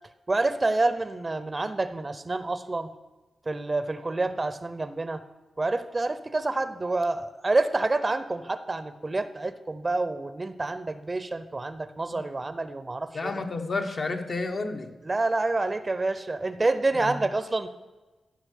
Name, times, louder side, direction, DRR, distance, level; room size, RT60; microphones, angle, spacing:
voice 1, 0.3-2.9 3.5-5.2 5.6-13.3 15.0-17.7, right 2 dB, 30° right, 12 dB, 0.7 m, -28 dB
voice 2, 13.1-14.9 17.0-17.2, left 3 dB, 50° left, 4 dB, 1.1 m, -31 dB
14.0 x 5.8 x 6.6 m, 1.2 s
cardioid pair, 75°, 0 cm